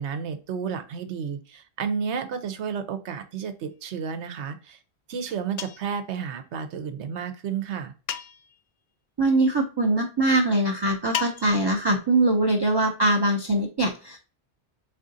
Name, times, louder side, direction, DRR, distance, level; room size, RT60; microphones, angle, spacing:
voice 1, 0.0-4.8 5.1-7.9, right 6 dB, 85° right, 10 dB, 1.0 m, -31 dB
sound 1, 5.6-6.0 8.1-8.6 11.1-11.7, left 8 dB, 60° left, 0.4 m, -33 dB
voice 2, 9.2-14.2, right 2 dB, 30° right, 0 dB, 0.5 m, -22 dB
4.2 x 3.7 x 2.7 m, 0.34 s
omnidirectional pair, 1.1 m